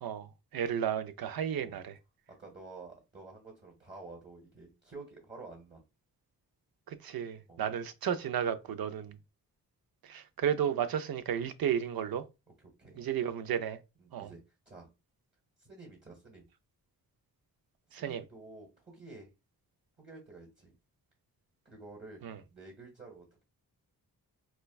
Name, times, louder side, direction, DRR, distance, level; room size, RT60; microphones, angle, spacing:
voice 1, 0.0-2.0 6.9-9.2 10.0-12.2 13.0-13.8 14.1-14.3 17.9-18.2 22.2-22.4, right 9 dB, 70° right, 0.5 m, -33 dB
voice 2, 2.4-5.8 7.5-7.6 12.6-13.0 14.0-14.4 14.6-14.9 15.6-16.4 18.0-19.3 20.0-20.7 21.6-22.2 22.5-23.4, right 3 dB, 30° right, 1.4 m, -50 dB
4.3 x 2.2 x 2.3 m
cardioid pair, 70°, 37 cm